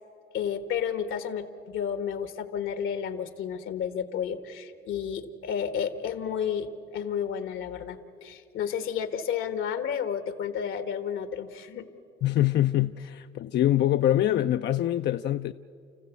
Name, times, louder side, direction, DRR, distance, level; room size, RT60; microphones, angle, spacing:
voice 1, 0.3-11.8, left 8 dB, 85° left, 1.5 m, -31 dB
voice 2, 12.2-15.5, left 13 dB, 60° left, 0.5 m, -24 dB
30.0 x 15.0 x 8.2 m
cardioid pair, 90°, 20 cm